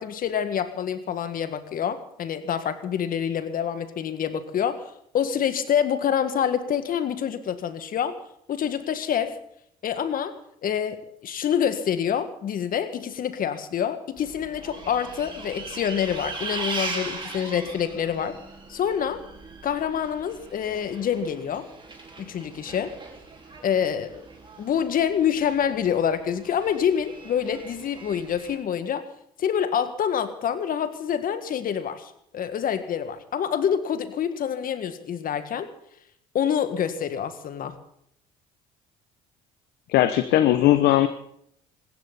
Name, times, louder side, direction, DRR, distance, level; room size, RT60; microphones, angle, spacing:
voice 1, 0.0-4.8 5.1-8.2 8.5-9.3 9.8-10.3 10.6-18.4 18.7-19.2 19.6-21.7 22.2-22.9 23.6-24.2 24.6-29.0 29.4-35.7 36.3-37.8, left 8 dB, 50° left, 10 dB, 1.9 m, -26 dB
Bus, 14.2-28.6, right 3 dB, 25° right, 4.3 m, -39 dB
voice 2, 39.9-41.1, left 13 dB, 70° left, 11 dB, 1.0 m, -18 dB
20.5 x 16.0 x 4.1 m, 0.71 s
supercardioid pair, 70°, 18 cm